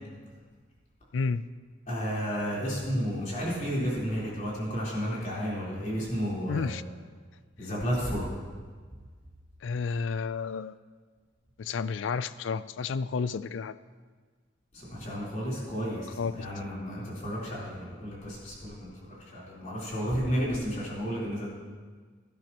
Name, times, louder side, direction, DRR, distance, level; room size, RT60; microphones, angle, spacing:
voice 1, 1.1-1.5 6.5-6.8 9.6-10.8 11.6-13.7 16.2-16.5, left 5 dB, 70° left, 16 dB, 0.4 m, -31 dB
voice 2, 1.9-6.7 7.6-8.3 14.7-16.1 16.3-18.9 19.3-21.5, equal, 40° left, -6 dB, 3.9 m, -32 dB
16.5 x 12.5 x 3.0 m, 1.5 s
head